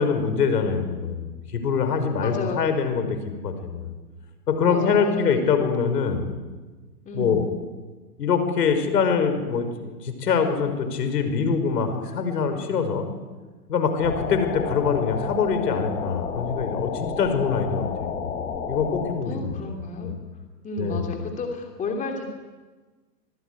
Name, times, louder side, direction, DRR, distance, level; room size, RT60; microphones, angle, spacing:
voice 1, 0.0-3.2 3.4-3.9 4.5-6.2 7.1-7.4 8.2-13.1 13.7-19.6 20.0-20.1 20.8-21.1, left 5 dB, 70° left, 8 dB, 5.8 m, -24 dB
voice 2, 2.2-2.6 4.7-5.2 7.0-7.5 19.2-20.1 20.6-22.2, left 3 dB, 15° left, 3 dB, 2.9 m, -31 dB
sound 1, 14.0-19.1, left 6 dB, 55° left, 5.8 m, -31 dB
25.5 x 19.0 x 9.7 m, 1.3 s
hypercardioid pair, 140°, 50 cm